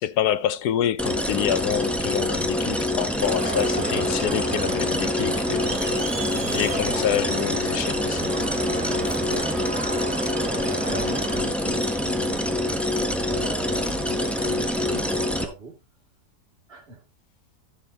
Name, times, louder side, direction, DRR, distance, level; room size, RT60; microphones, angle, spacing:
voice 1, 0.0-6.0 6.5-8.3, left 10 dB, 85° left, 1.3 m, -27 dB
sound 1, 1.0-15.4, left 1 dB, ahead, 1.1 m, -25 dB
Crowd, 3.2-11.4, right 4 dB, 85° right, 2.3 m, -33 dB
voice 2, 10.5-12.7 13.1-15.7 16.7-17.0, right 3 dB, 40° right, 2.7 m, -39 dB
14.5 x 7.2 x 2.8 m
omnidirectional pair, 1.6 m